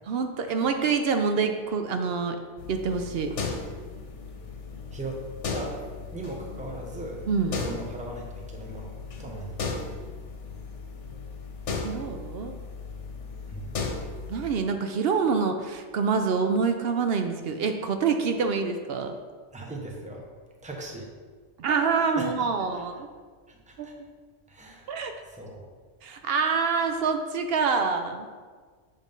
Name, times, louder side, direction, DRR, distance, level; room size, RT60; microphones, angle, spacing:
voice 1, 0.1-2.4 2.7-3.3 7.3-7.7 11.8-12.6 14.3-19.1 21.6-22.9 23.8-23.9 24.9-25.1 26.0-28.3, right 5 dB, 65° right, 6 dB, 0.7 m, -26 dB
sound 1, 2.6-14.5, left 4 dB, 80° left, 1.1 m, -36 dB
voice 2, 4.9-5.2 5.5-5.8 6.1-7.2 7.5-8.9 9.2-9.6 13.5-13.7 19.5-20.3 20.6-21.1 22.2-22.5 22.7-22.8 23.5-23.9 24.5-25.7, right 2 dB, 5° right, 0 dB, 0.7 m, -39 dB
7.1 x 3.7 x 5.3 m, 1.5 s
omnidirectional pair, 1.2 m